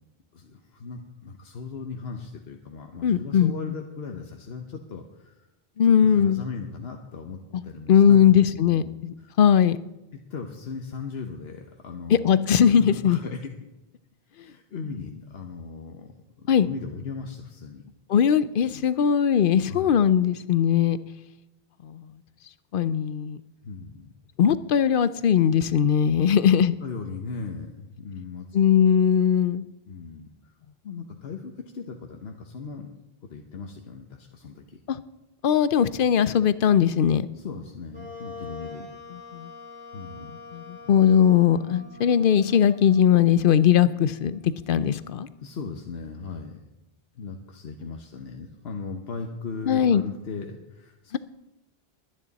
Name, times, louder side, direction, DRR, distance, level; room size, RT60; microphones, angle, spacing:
voice 1, 0.3-5.5 5.8-8.4 8.6-9.3 10.1-12.4 12.8-13.5 14.3-16.1 16.4-17.8 19.7-19.9 23.6-24.1 26.8-28.5 29.9-30.5 30.8-32.9 33.3-34.8 37.3-38.8 39.9-40.3 45.4-46.6 47.1-51.2, left 4 dB, 80° left, 3 dB, 1.2 m, -37 dB
voice 2, 3.0-3.5 5.8-6.4 7.5-7.6 7.9-9.8 12.2-13.2 16.5-16.7 18.1-21.0 21.8-22.0 22.7-23.4 24.4-26.7 28.5-29.6 34.9-35.0 35.4-37.3 39.3-39.5 40.5-44.4 44.7-45.3 49.7-50.0 51.1-51.2, left 8 dB, 65° left, 15 dB, 0.7 m, -20 dB
Wind instrument woodwind instrument, 37.9-45.3, left 3 dB, 10° left, 2.4 m, -45 dB
21.5 x 9.9 x 4.1 m, 0.97 s
omnidirectional pair, 1.0 m